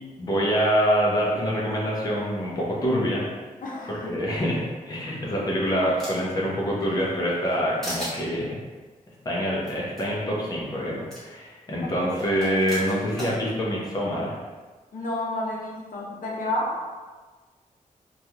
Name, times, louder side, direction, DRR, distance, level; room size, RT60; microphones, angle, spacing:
voice 1, 0.2-3.2 3.9-8.6 9.2-14.4, equal, 25° left, -5 dB, 0.6 m, -25 dB
voice 2, 3.6-4.1 5.2-5.3 11.8-12.1 14.9-17.0, left 1 dB, 75° left, -3 dB, 0.6 m, -31 dB
sound 1, 5.0-6.4 6.8-7.6 7.8-8.2 9.6-9.7 10.0-10.1 11.1-11.2 12.2-13.3, equal, 5° left, 1.2 m, -36 dB
3.1 x 2.3 x 2.8 m, 1.3 s
wide cardioid pair, 165°, 14 cm